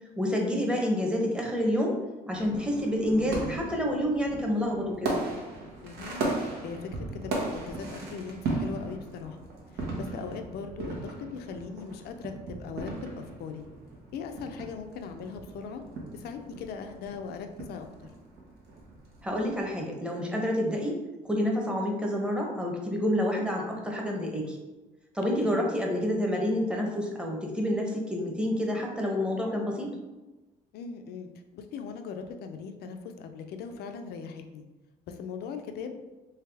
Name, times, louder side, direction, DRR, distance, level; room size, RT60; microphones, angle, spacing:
voice 1, 0.2-2.0 2.3-5.2 19.2-21.0 21.3-24.6 25.1-29.9, equal, 5° right, 0 dB, 0.8 m, -28 dB
sound 1, 2.3-19.7, right 2 dB, 80° right, 1.0 m, -37 dB
voice 2, 5.8-9.4 9.7-13.7 14.1-15.8 16.1-18.1 25.4-25.6 30.7-34.7 35.1-35.9, left 5 dB, 70° left, 6 dB, 0.5 m, -40 dB
3.4 x 3.2 x 3.4 m, 1.1 s
cardioid pair, 110°, 17 cm